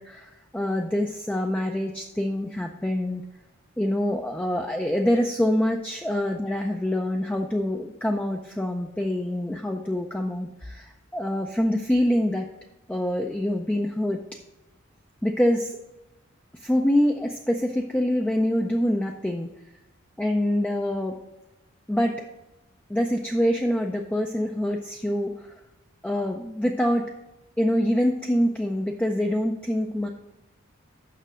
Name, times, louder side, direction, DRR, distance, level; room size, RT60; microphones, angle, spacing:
voice 1, 0.0-3.3 3.8-12.5 12.9-14.2 15.2-15.7 16.7-19.5 20.2-21.2 21.9-22.2 22.9-25.6 26.0-27.1 27.6-30.1, left 1 dB, 5° left, 2 dB, 0.4 m, -25 dB
6.7 x 5.9 x 6.2 m, 1.0 s
head